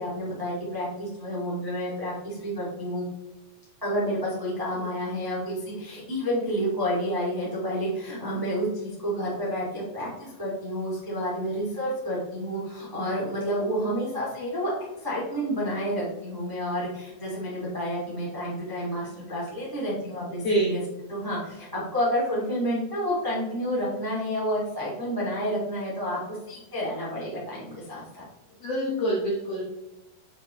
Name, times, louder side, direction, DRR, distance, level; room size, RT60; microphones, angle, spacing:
voice 1, 0.0-3.0 3.8-14.7 15.0-20.8 21.1-28.2, equal, 20° right, -6 dB, 0.5 m, -30 dB
voice 2, 20.3-20.7 28.6-29.6, right 1 dB, 65° left, -5 dB, 1.5 m, -26 dB
7.2 x 5.1 x 3.0 m, 1.0 s
omnidirectional pair, 4.5 m